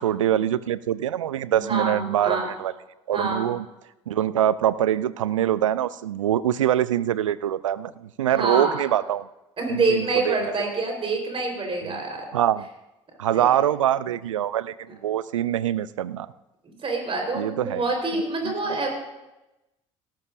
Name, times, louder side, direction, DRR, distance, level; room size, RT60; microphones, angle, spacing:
voice 1, 0.0-2.7 3.1-3.7 4.1-9.3 9.7-10.4 11.9-12.0 12.3-12.7 13.2-14.7 15.0-16.3 17.3-17.8 18.4-18.8, right 11 dB, 85° right, 18 dB, 0.4 m, -24 dB
voice 2, 1.5-2.5 3.1-3.5 8.3-8.8 9.6-12.3 13.3-13.6 16.6-18.9, right 3 dB, 35° right, 2 dB, 3.9 m, -26 dB
17.5 x 13.0 x 2.5 m, 0.98 s
figure-of-eight pair, 55°, 16 cm